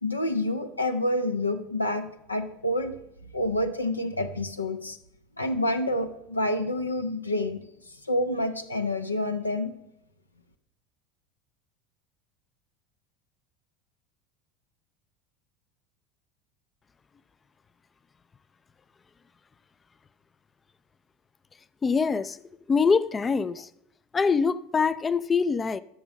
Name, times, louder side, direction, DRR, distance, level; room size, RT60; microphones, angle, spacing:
voice 1, 0.0-3.0 3.3-5.0 5.4-7.6 8.0-9.7, left 1 dB, 90° left, 0.7 m, -28 dB
voice 2, 21.8-22.4 22.7-23.7 24.1-25.8, left 5 dB, 25° left, 0.4 m, -24 dB
12.5 x 5.3 x 6.3 m
figure-of-eight pair, 75°, 0 cm